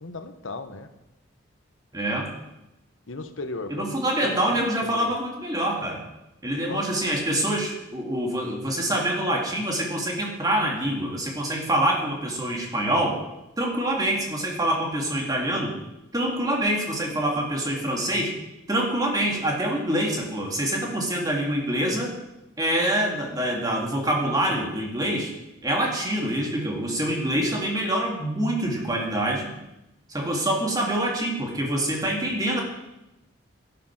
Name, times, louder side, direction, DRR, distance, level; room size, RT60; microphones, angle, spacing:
voice 1, 0.0-0.9 3.1-3.9 4.2-5.2 6.6-6.8 32.0-32.4, left 3 dB, 75° left, 8 dB, 1.1 m, -36 dB
voice 2, 1.9-2.3 3.7-6.0 6.4-13.2 13.6-15.7 16.1-18.3 18.7-22.1 22.6-25.3 25.6-29.5 30.1-32.6, right 1 dB, 20° right, 0 dB, 2.1 m, -25 dB
11.5 x 10.0 x 5.9 m, 0.94 s
head